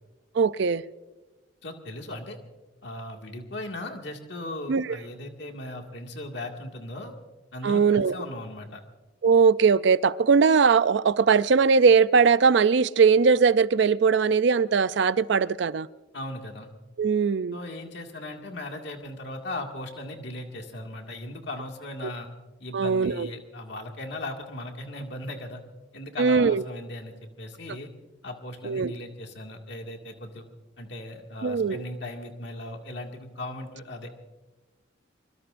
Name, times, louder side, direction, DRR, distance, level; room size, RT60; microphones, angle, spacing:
voice 1, 0.4-0.8 4.7-4.9 7.6-8.1 9.2-15.9 17.0-17.6 22.7-23.3 26.2-26.6 28.6-28.9 31.4-31.8, right 5 dB, 60° right, 0.4 m, -20 dB
voice 2, 1.6-2.4 2.8-7.1 7.5-8.8 16.1-16.7 17.5-22.3 22.6-25.6 25.9-27.9 28.2-30.4 30.8-34.2, left 1 dB, 60° left, 2.1 m, -37 dB
24.5 x 23.0 x 2.6 m
head